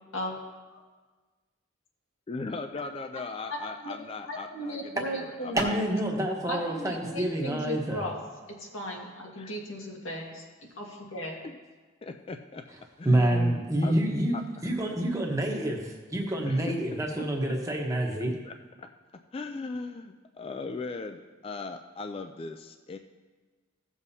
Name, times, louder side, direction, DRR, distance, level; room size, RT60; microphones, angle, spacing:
voice 1, 2.3-5.8 9.4-9.5 11.4-11.6 12.0-14.0 14.3-14.7 16.5-17.6 18.4-23.0, left 3 dB, 30° left, 7 dB, 0.3 m, -39 dB
voice 2, 3.5-3.9 4.2-5.6 6.5-8.2 8.6-10.4 10.8-11.4, equal, 75° left, -1 dB, 1.8 m, -36 dB
voice 3, 5.5-8.0 13.0-14.4 14.6-18.3, right 1 dB, 15° right, 0 dB, 1.1 m, -27 dB
16.0 x 7.1 x 2.8 m, 1.3 s
head